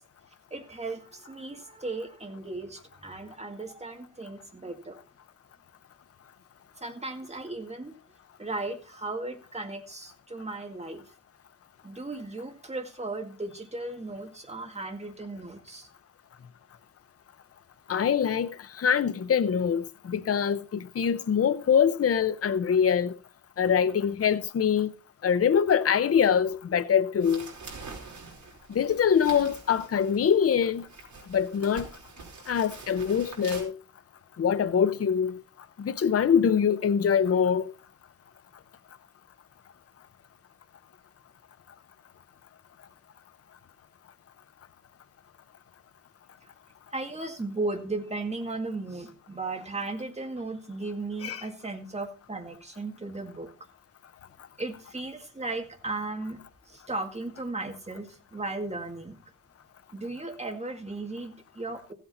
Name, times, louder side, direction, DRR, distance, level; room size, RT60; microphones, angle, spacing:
voice 1, 0.5-5.0 6.8-8.0 8.4-11.0 11.8-15.9 46.4-46.5 46.9-53.5 54.6-59.2 59.9-61.9, right 2 dB, 20° right, 2.0 m, -36 dB
voice 2, 17.9-23.1 23.6-24.9 25.2-27.4 28.7-30.8 31.3-31.9 32.5-33.8 34.4-35.4 35.8-37.7 51.2-51.4, left 7 dB, 50° left, 0.7 m, -24 dB
sound 1, 27.2-33.6, right 4 dB, 70° right, 4.7 m, -45 dB
15.5 x 8.2 x 4.2 m
wide cardioid pair, 130°, 31 cm